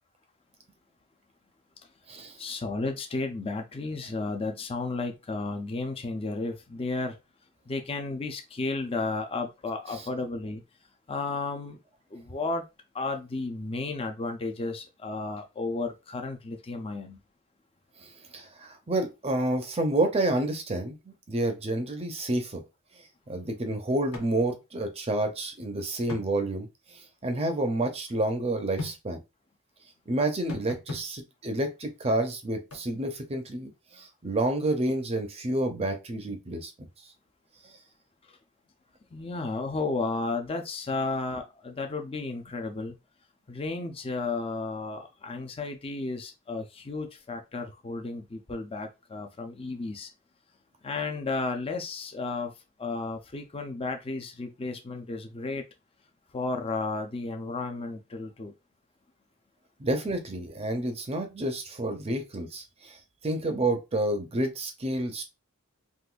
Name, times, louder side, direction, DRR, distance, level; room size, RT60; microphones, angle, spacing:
voice 1, 2.4-7.2 7.7-10.6 11.1-11.8 12.1-12.6 12.9-17.2 38.3-38.4 39.1-42.9 43.5-50.1 50.8-52.5 52.8-55.6 56.3-58.5, left 3 dB, 25° left, 0.5 m, -33 dB
voice 2, 18.0-22.6 23.3-29.2 30.1-36.9 59.8-63.0 63.2-65.3, right 1 dB, 30° right, 0.6 m, -29 dB
sound 1, 24.1-24.3 24.6-24.7 26.1-26.3 28.8-29.0 30.5-31.1 32.7-32.8, left 2 dB, 80° left, 0.9 m, -37 dB
3.7 x 2.5 x 2.4 m
head